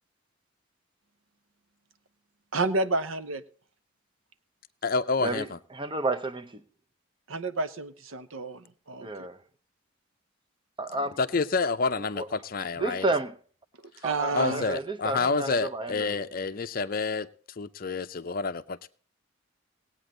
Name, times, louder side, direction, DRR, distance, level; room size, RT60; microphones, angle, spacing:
voice 1, 2.5-3.4 7.3-9.3 14.0-14.7, right 3 dB, 80° right, 0.9 m, -30 dB
voice 2, 4.8-5.6 11.2-13.0 14.3-17.3 17.6-18.9, left 4 dB, 45° left, 0.6 m, -28 dB
voice 3, 5.7-6.6 9.0-9.4 10.8-11.2 12.2-12.3 12.8-13.4 14.0-16.3, right 2 dB, 25° right, 0.7 m, -31 dB
18.5 x 8.8 x 3.8 m
head